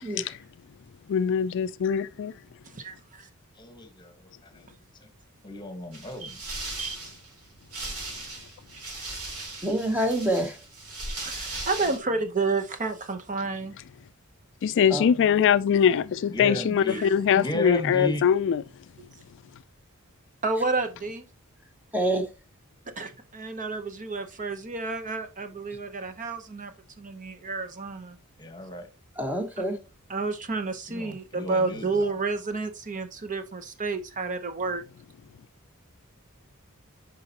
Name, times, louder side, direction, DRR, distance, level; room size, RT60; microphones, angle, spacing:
voice 1, 1.1-2.3 14.6-18.6, left 8 dB, 55° left, 0.3 m, -22 dB
voice 2, 2.7-3.3 6.2-6.3 6.8-7.0 11.2-13.7 16.9-17.1 19.0-19.1 20.4-21.2 23.0-26.7 27.0-28.2 30.1-34.8, right 3 dB, 35° right, 0.8 m, -30 dB
voice 3, 3.6-4.7 5.0-5.1 5.4-6.4 14.7-15.5 16.3-17.0 17.3-18.3 28.4-28.9 30.9-32.0, left 1 dB, 20° left, 1.3 m, -35 dB
sound 1, 5.9-12.0, right 2 dB, 90° right, 3.2 m, -38 dB
voice 4, 9.6-10.6 14.9-15.1 21.9-22.3 29.2-29.8, right 1 dB, 10° right, 1.0 m, -26 dB
9.5 x 5.2 x 2.8 m
head